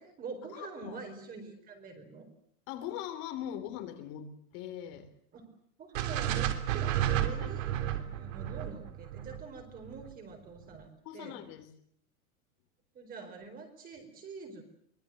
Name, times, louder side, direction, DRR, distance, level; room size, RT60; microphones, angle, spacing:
voice 1, 0.0-2.3 5.3-5.4 5.8-7.7 8.0-11.4 12.9-14.6, right 4 dB, 20° right, 5 dB, 4.5 m, -45 dB
voice 2, 0.5-1.0 2.7-5.1 7.3-7.5 11.1-11.7, left 11 dB, 40° left, 9 dB, 3.6 m, -41 dB
sound 1, 5.9-10.1, right 11 dB, 60° right, 3.2 m, -32 dB
24.5 x 21.0 x 7.8 m, 0.67 s
supercardioid pair, 170°, 43 cm